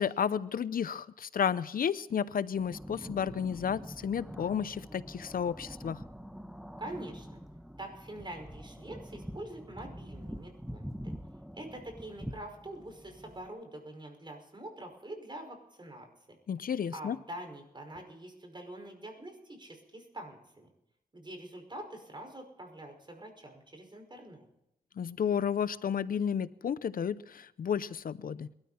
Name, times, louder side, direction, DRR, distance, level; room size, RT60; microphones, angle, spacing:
voice 1, 0.0-6.0 16.5-17.2 25.0-28.5, left 7 dB, 75° left, 16 dB, 0.6 m, -32 dB
sound 1, 2.5-13.5, equal, 5° right, 1.1 m, -45 dB
voice 2, 6.8-7.4 7.8-11.1 11.5-16.4 16.9-20.7 21.1-24.4, right 1 dB, 30° right, 4 dB, 5.4 m, -45 dB
21.5 x 13.0 x 4.3 m, 0.83 s
cardioid pair, 70°, 15 cm